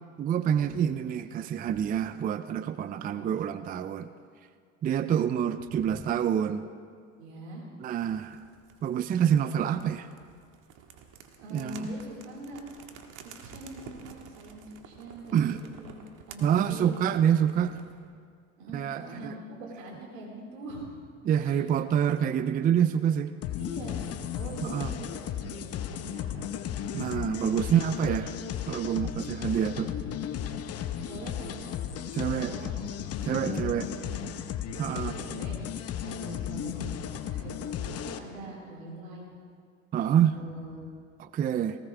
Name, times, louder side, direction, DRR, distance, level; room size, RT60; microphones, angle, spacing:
voice 1, 0.2-4.1 4.8-6.6 7.8-8.4 8.8-10.1 11.5-11.9 15.3-15.6 16.4-17.8 18.7-19.3 21.2-23.4 24.6-24.9 26.9-28.4 28.7-29.9 32.1-32.5 33.2-33.9 34.8-35.1 39.9-40.4 41.2-41.8, right 9 dB, 25° right, 12 dB, 0.4 m, -27 dB
voice 2, 2.9-3.3 5.8-5.9 7.2-7.7 11.4-12.6 13.4-15.9 16.3-16.9 18.6-20.9 21.4-21.6 23.6-26.5 31.1-31.7 32.2-32.7 33.3-34.2 34.7-35.6 36.0-39.2 40.1-40.9, right 1 dB, 80° right, -2 dB, 4.8 m, -43 dB
sound 1, 8.0-18.0, right 6 dB, 50° right, 1.8 m, -51 dB
sound 2, 23.4-38.2, left 10 dB, 40° left, 0.9 m, -35 dB
19.0 x 18.5 x 3.4 m, 2.1 s
hypercardioid pair, 95°, 39 cm